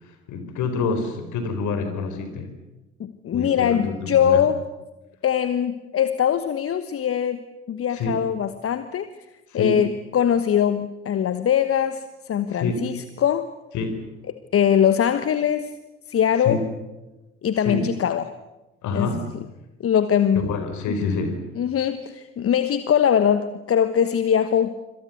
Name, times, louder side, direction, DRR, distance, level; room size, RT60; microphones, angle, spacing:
voice 1, 0.3-2.5 3.3-4.5 7.9-8.2 9.5-9.8 12.5-12.8 13.7-14.1 16.4-16.6 17.6-17.9 18.8-19.3 20.4-21.4, left 4 dB, 55° left, 9 dB, 4.4 m, -27 dB
voice 2, 3.0-4.6 5.2-9.1 9.5-13.5 14.5-15.7 16.1-16.6 17.4-18.3 18.9-19.1 19.8-20.5 21.6-24.7, left 9 dB, 40° left, 12 dB, 1.3 m, -22 dB
26.0 x 26.0 x 6.8 m, 1.0 s
figure-of-eight pair, 50°, 34 cm